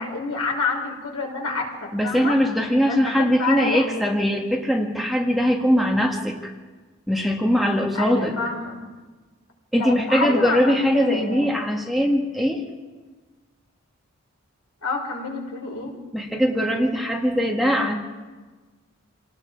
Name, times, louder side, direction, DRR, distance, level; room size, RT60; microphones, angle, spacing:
voice 1, 0.0-2.3 2.9-4.0 7.9-8.8 9.8-11.5 14.8-15.9, left 3 dB, 75° left, 0 dB, 5.7 m, -28 dB
voice 2, 1.9-6.5 7.1-8.3 9.7-12.6 16.1-18.0, equal, ahead, 0 dB, 1.8 m, -21 dB
28.0 x 19.0 x 4.9 m, 1.3 s
head